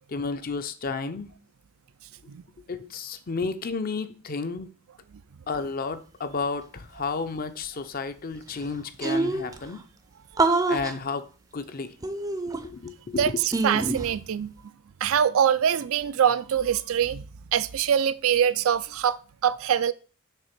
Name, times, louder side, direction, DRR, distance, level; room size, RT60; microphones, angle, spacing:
voice 1, 0.1-1.3 2.7-4.7 5.5-9.8 10.7-11.3 11.5-11.9 12.6-13.4, left 4 dB, 40° left, 0.6 m, -32 dB
sound 1, 8.3-8.4 8.6-8.7 9.0-9.6 10.4-10.9 12.0-12.9 13.5-14.1, right 3 dB, 15° right, 0.5 m, -25 dB
voice 2, 13.2-14.5 15.0-17.2 17.5-19.2 19.4-19.9, right 8 dB, 70° right, 0.4 m, -23 dB
6.7 x 3.5 x 5.9 m
head